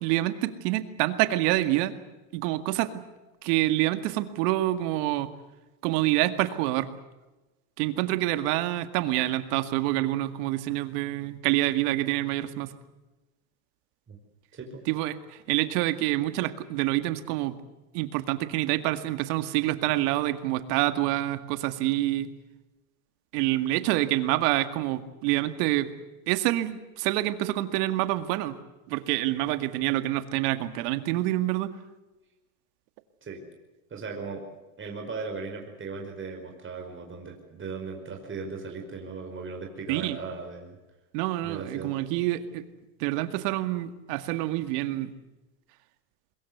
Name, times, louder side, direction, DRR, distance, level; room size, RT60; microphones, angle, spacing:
voice 1, 0.0-1.9 2.3-2.9 3.4-5.3 5.8-6.9 7.8-12.7 14.9-15.2 15.5-17.5 17.9-22.3 23.3-25.9 26.3-28.5 28.9-31.7 39.9-40.2 41.1-42.6 43.0-45.1, right 16 dB, 70° right, 11 dB, 2.2 m, -27 dB
voice 2, 14.5-14.8 33.2-33.4 33.9-34.4 34.8-40.8 41.4-41.9, right 4 dB, 25° right, 2 dB, 5.1 m, -37 dB
23.5 x 21.5 x 8.1 m, 1.1 s
supercardioid pair, 110°, 49 cm